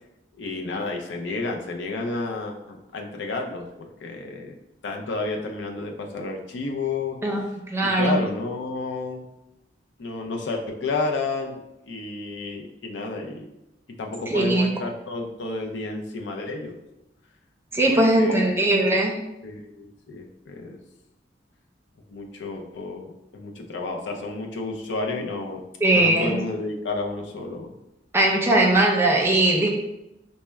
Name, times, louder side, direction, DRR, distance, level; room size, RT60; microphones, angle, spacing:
voice 1, 0.3-4.6 4.8-7.2 7.8-9.3 10.0-13.5 13.9-16.7 17.9-18.6 19.4-20.8 22.1-25.6 25.9-27.7, left 3 dB, 75° left, 1 dB, 0.5 m, -31 dB
voice 2, 7.7-8.2 14.3-14.7 17.7-19.1 25.8-26.3 28.1-29.7, right 1 dB, 15° right, -1 dB, 0.6 m, -19 dB
4.1 x 2.1 x 3.3 m, 0.90 s
head